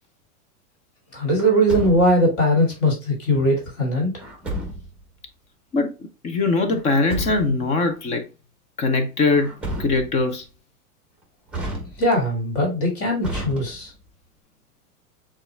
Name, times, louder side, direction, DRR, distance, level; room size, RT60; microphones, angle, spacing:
voice 1, 1.1-4.1 12.0-13.9, equal, 40° left, 2.2 m, -20 dB
Truck, 1.4-2.3 4.2-5.0 6.7-7.7 9.3-10.3 11.5-12.3 13.2-14.1, right 1 dB, 5° right, 0.9 m, -32 dB
voice 2, 6.2-8.2 8.8-9.5 9.8-10.4, left 3 dB, 15° left, 0.4 m, -21 dB
6.6 x 2.4 x 3.3 m
supercardioid pair, 140°, 43 cm